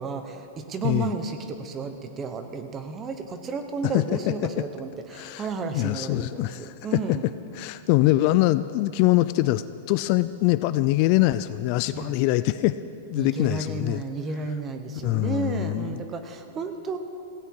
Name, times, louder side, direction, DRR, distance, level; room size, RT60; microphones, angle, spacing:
voice 1, 0.0-7.2 11.9-12.1 13.2-17.0, right 4 dB, 20° right, 7 dB, 1.1 m, -32 dB
voice 2, 3.8-4.5 5.1-5.5 5.7-12.8 13.1-14.0 15.0-16.0, left 17 dB, 40° left, 14 dB, 0.3 m, -24 dB
17.0 x 16.5 x 4.8 m, 2.6 s
supercardioid pair, 160°, 0 cm